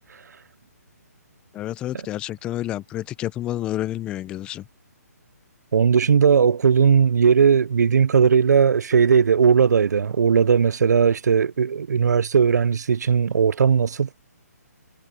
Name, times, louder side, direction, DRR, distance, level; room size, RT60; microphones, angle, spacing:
voice 1, 1.5-4.7, left 13 dB, 10° left, 0.6 m, -29 dB
voice 2, 5.7-14.1, right 6 dB, 80° right, 0.5 m, -18 dB
hypercardioid pair, 165°, 9 cm